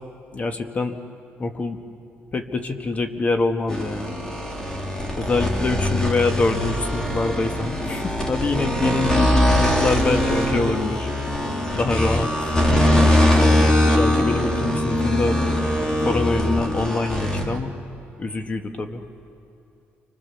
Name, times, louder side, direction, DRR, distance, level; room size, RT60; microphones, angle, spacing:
voice 1, 0.3-0.9 1.4-1.8 2.3-4.1 5.2-11.1 11.7-12.6 13.4-15.7 16.0-17.8 18.2-19.0, left 3 dB, 30° left, 6 dB, 1.6 m, -25 dB
sound 1, 3.7-17.6, left 1 dB, 15° left, 2.9 m, -21 dB
29.5 x 25.5 x 7.1 m, 2.6 s
cardioid pair, 115°, 4 cm